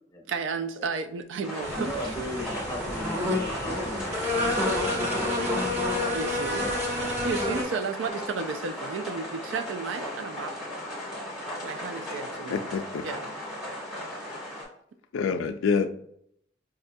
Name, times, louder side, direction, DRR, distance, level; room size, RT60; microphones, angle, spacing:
voice 1, 0.3-2.1 6.1-6.7 7.2-10.5 11.6-12.7 13.0-13.3, right 5 dB, 75° right, 10 dB, 0.3 m, -33 dB
sound 1, 1.4-14.6, equal, ahead, 1.2 m, -37 dB
sound 2, 1.6-7.6, left 1 dB, 35° right, 0.9 m, -29 dB
voice 2, 1.7-5.7 6.6-6.8 12.0-12.4, left 1 dB, 15° left, 0 dB, 0.6 m, -38 dB
voice 3, 12.5-13.0 15.1-15.9, left 5 dB, 90° left, 9 dB, 0.3 m, -26 dB
4.7 x 2.2 x 2.6 m, 0.69 s
head